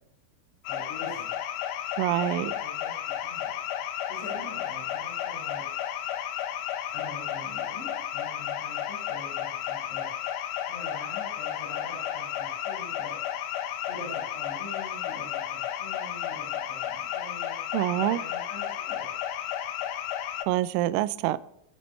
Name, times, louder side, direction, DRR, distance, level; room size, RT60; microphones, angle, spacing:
sound 1, 0.7-20.5, left 11 dB, 80° left, 3.4 m, -33 dB
voice 1, 0.7-1.4 2.1-2.9 3.2-3.5 4.1-5.6 6.9-10.1 10.7-13.2 13.9-17.5 18.1-19.1, left 2 dB, 40° left, 8.1 m, -44 dB
voice 2, 2.0-2.5 17.7-18.2 20.5-21.4, right 15 dB, 85° right, 3.0 m, -26 dB
26.5 x 10.0 x 3.3 m
omnidirectional pair, 5.9 m